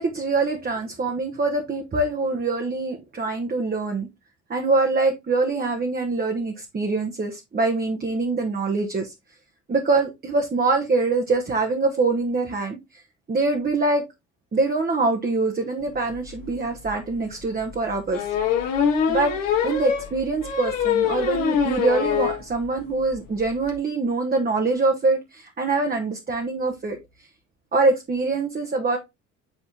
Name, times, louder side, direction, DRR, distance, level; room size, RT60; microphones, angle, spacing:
voice 1, 0.0-4.1 4.5-9.1 9.7-12.8 13.3-14.0 14.5-18.3 19.1-27.0 27.7-29.0, right 3 dB, 25° right, 3 dB, 1.1 m, -24 dB
sound 1, 16.4-16.5 16.8-16.9 18.1-22.4 22.8-22.9 23.1-23.2 23.4-23.7, left 7 dB, 55° left, 1.4 m, -23 dB
8.1 x 4.2 x 2.8 m, 0.22 s
figure-of-eight pair, 55°, 39 cm